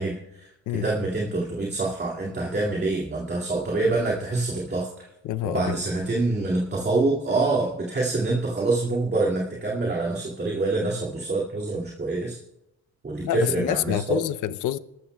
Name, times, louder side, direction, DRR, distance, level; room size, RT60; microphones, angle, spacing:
voice 1, 0.0-0.5 0.8-4.9 5.4-12.4 13.0-14.2, right 2 dB, 35° right, 2.4 m, -26 dB
voice 2, 5.2-5.8 13.2-14.8, left 11 dB, 80° left, 0.7 m, -27 dB
27.0 x 13.0 x 2.3 m
cardioid pair, 90°, 30 cm